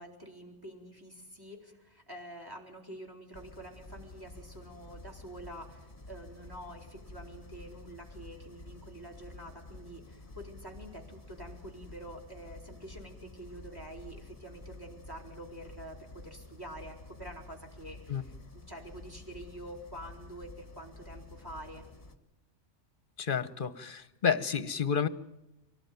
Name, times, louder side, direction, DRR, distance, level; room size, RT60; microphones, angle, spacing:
voice 1, 0.0-21.9, right 1 dB, 20° right, 3 dB, 4.2 m, -47 dB
sound 1, 3.3-22.2, left 2 dB, 30° left, 1.8 m, -50 dB
voice 2, 23.2-25.1, left 7 dB, 45° left, 14 dB, 1.1 m, -30 dB
24.5 x 18.5 x 9.3 m, 0.92 s
omnidirectional pair, 1.3 m